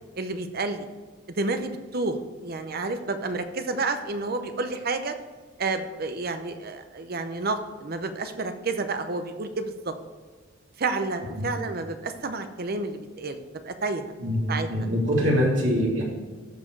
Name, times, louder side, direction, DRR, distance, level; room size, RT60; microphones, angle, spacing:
voice 1, 0.2-0.9 1.4-5.1 5.6-9.9 10.8-14.0 14.5-14.7, right 3 dB, 50° right, 9 dB, 0.8 m, -30 dB
voice 2, 14.2-16.0, equal, 70° right, -3 dB, 2.8 m, -24 dB
13.5 x 4.6 x 4.6 m, 1.5 s
head